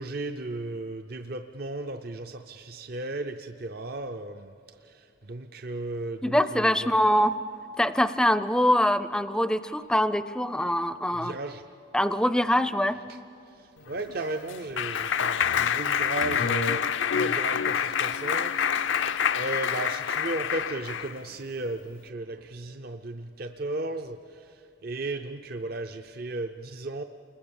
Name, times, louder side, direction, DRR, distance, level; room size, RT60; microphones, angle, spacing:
voice 1, 0.0-7.0 11.1-11.7 13.1-13.2 13.5-27.0, right 2 dB, 50° right, 7 dB, 0.6 m, -35 dB
voice 2, 6.2-7.3 7.8-11.3 11.9-13.0, left 1 dB, 5° left, 13 dB, 0.5 m, -24 dB
Clapping, 13.9-21.2, left 7 dB, 75° left, 0.5 m, -27 dB
29.0 x 21.0 x 7.1 m, 2.6 s
head